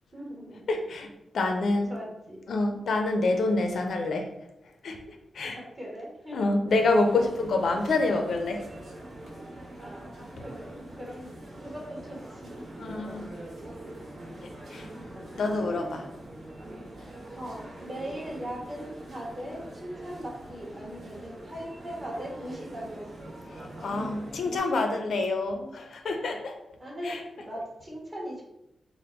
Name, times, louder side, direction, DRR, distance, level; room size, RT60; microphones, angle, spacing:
voice 1, 0.1-0.7 1.5-2.4 5.4-6.5 9.8-11.3 11.6-12.6 15.4-15.9 17.4-23.3 26.8-28.4, equal, 25° right, -3 dB, 1.1 m, -40 dB
voice 2, 0.7-1.1 1.3-1.9 2.5-4.3 4.8-5.0 5.3-5.6 6.3-8.6 10.4-10.5 12.8-13.3 14.7-14.9 15.4-16.0 23.8-26.6 27.1-27.2, left 2 dB, 70° left, 4 dB, 0.6 m, -27 dB
sound 1, 6.7-24.6, right 1 dB, 60° right, 1.1 m, -43 dB
3.5 x 2.2 x 4.4 m, 0.87 s
wide cardioid pair, 155°, 0 cm